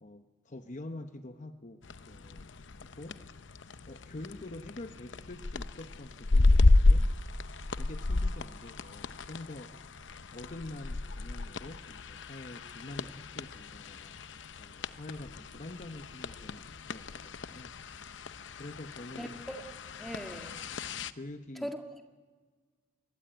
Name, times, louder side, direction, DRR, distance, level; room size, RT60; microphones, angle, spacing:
voice 1, 0.0-1.8 2.1-2.5 2.8-3.2 3.9-7.1 7.8-9.7 10.3-14.2 14.6-17.7 18.6-19.4 21.1-21.7, left 2 dB, 40° left, 8 dB, 0.9 m, -46 dB
sound 1, 1.8-21.1, left 2 dB, 70° left, 0.8 m, -31 dB
voice 2, 19.2-19.6 20.0-20.6 21.6-22.0, equal, ahead, 4 dB, 1.9 m, -40 dB
25.0 x 21.5 x 9.1 m, 1.4 s
head